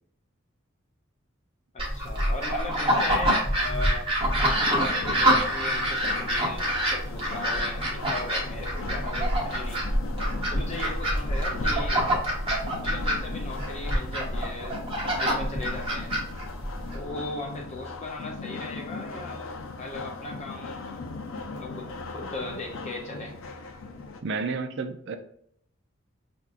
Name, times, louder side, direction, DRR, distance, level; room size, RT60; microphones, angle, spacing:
voice 1, 1.7-4.1 4.7-9.8 10.5-12.0 12.8-16.1 16.9-21.0 21.5-23.3, left 2 dB, 35° left, 0.5 m, -38 dB
sound 1, 1.8-17.0, equal, 25° right, 1.0 m, -26 dB
sound 2, 4.4-24.2, left 2 dB, 85° left, 0.5 m, -37 dB
voice 2, 24.2-25.2, right 4 dB, 60° right, 0.5 m, -31 dB
5.8 x 2.6 x 2.4 m
head